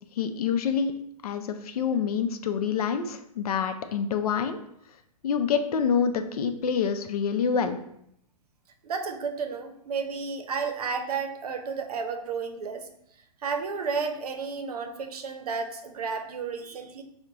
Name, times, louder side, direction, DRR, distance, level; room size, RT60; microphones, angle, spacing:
voice 1, 0.2-0.9 1.2-4.6 5.2-7.8, left 6 dB, 70° left, 8 dB, 0.5 m, -26 dB
voice 2, 8.8-12.9 13.4-17.0, right 5 dB, 75° right, 6 dB, 0.6 m, -32 dB
4.5 x 2.1 x 3.7 m, 0.74 s
hypercardioid pair, 130°, 19 cm